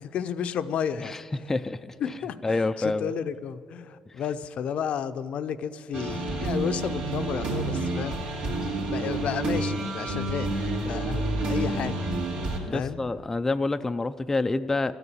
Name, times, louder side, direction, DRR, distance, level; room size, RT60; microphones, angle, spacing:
voice 1, 0.0-1.1 2.0-8.2 8.9-10.5 10.8-12.0 12.7-13.0, left 8 dB, 60° left, 11 dB, 0.6 m, -32 dB
voice 2, 1.0-2.1 2.4-3.1 12.7-14.9, left 3 dB, 15° left, 9 dB, 0.4 m, -28 dB
sound 1, 5.9-12.6, right 2 dB, 80° right, 2.7 m, -29 dB
13.0 x 7.0 x 8.7 m, 2.4 s
cardioid pair, 100°, 2 cm